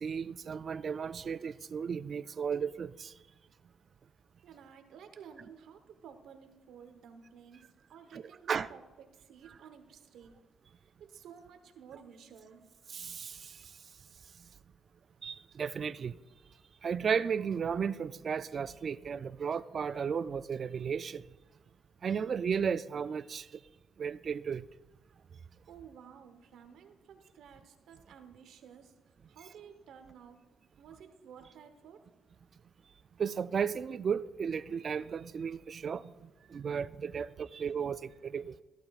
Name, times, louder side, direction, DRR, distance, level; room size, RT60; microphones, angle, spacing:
voice 1, 0.0-3.1 8.1-8.2 8.5-8.7 12.9-13.5 15.2-16.2 16.8-21.2 22.0-23.5 24.0-24.6 33.2-38.5, right 6 dB, 50° right, 0.3 m, -34 dB
voice 2, 4.4-10.3 11.0-12.6 25.7-28.9 29.3-30.4 30.8-32.0 36.4-36.6 38.1-38.2, right 7 dB, 75° right, 1.0 m, -53 dB
14.5 x 12.0 x 2.4 m
cardioid pair, 90°, 0 cm